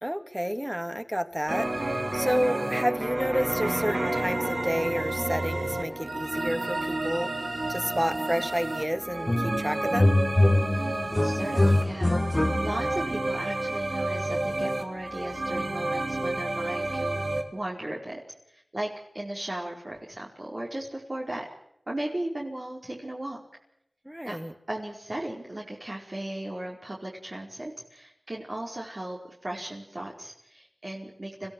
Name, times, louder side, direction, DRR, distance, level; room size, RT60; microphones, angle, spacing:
voice 1, 0.0-7.3 7.7-10.2 24.1-24.5, equal, 10° right, 9 dB, 2.4 m, -30 dB
Electric guitar, 1.5-9.3, right 1 dB, 30° right, 0.8 m, -34 dB
sound 1, 1.5-17.4, right 2 dB, 60° right, 3.8 m, -31 dB
sound 2, 9.3-9.6 9.9-13.0, left 1 dB, 30° left, 1.8 m, -23 dB
voice 2, 10.7-17.2 17.5-18.2 18.5-18.9 19.1-21.5 21.9-23.4 24.2-24.4 24.7-31.5, right 1 dB, 45° right, -2 dB, 4.9 m, -36 dB
26.5 x 16.0 x 7.8 m, 0.76 s
wide cardioid pair, 45°, 0 cm